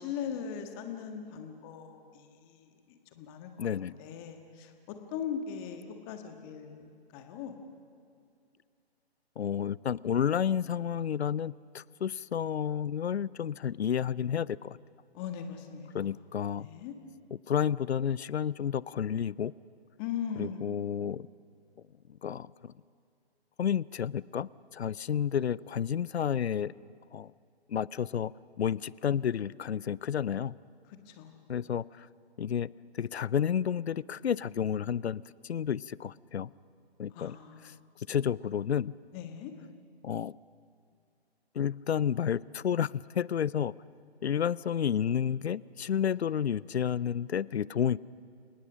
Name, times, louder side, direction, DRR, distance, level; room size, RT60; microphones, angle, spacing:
voice 1, 0.0-7.5 15.1-16.1 16.6-16.9 20.0-20.9 31.1-31.4 37.1-37.9 39.1-39.5, left 7 dB, 20° left, 6 dB, 1.6 m, -40 dB
voice 2, 3.6-3.9 9.4-14.8 15.9-16.7 17.5-19.5 20.4-21.3 22.2-22.7 23.6-26.7 27.1-27.3 27.7-28.3 28.6-30.5 31.5-32.1 32.4-32.7 33.0-36.5 37.0-37.4 38.1-38.9 40.0-40.3 41.6-43.7 44.2-48.0, left 8 dB, 80° left, 22 dB, 0.6 m, -31 dB
29.5 x 18.5 x 6.3 m, 2.3 s
hypercardioid pair, 145°, 32 cm